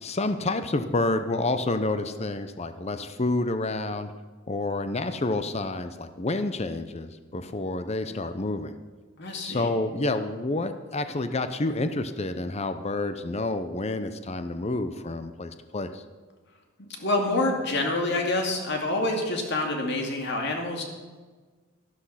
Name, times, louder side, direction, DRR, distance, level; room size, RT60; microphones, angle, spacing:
voice 1, 0.0-4.1 4.5-8.8 9.4-16.0, left 2 dB, 30° left, 9 dB, 0.7 m, -29 dB
voice 2, 9.2-9.7 16.8-20.8, left 2 dB, 55° left, 2 dB, 2.4 m, -27 dB
12.5 x 12.5 x 5.8 m, 1.4 s
head